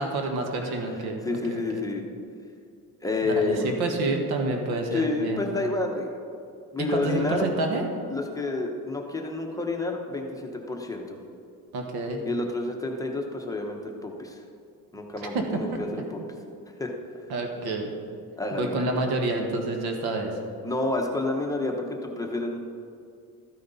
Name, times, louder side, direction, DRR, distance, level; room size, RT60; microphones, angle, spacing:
voice 1, 0.0-1.8 3.2-5.4 6.8-7.9 11.7-12.2 15.2-15.4 15.7-15.8 17.3-17.9 18.5-20.3, right 2 dB, 75° right, 3 dB, 1.5 m, -28 dB
voice 2, 0.6-0.9 1.2-2.1 3.0-3.7 4.9-6.1 6.7-7.4 8.1-11.2 12.2-14.4 14.9-16.2 16.8-16.9 18.4-18.8 20.6-22.6, left 2 dB, 10° left, 1 dB, 0.8 m, -29 dB
13.5 x 9.4 x 4.0 m, 2.4 s
cardioid pair, 175°, 38 cm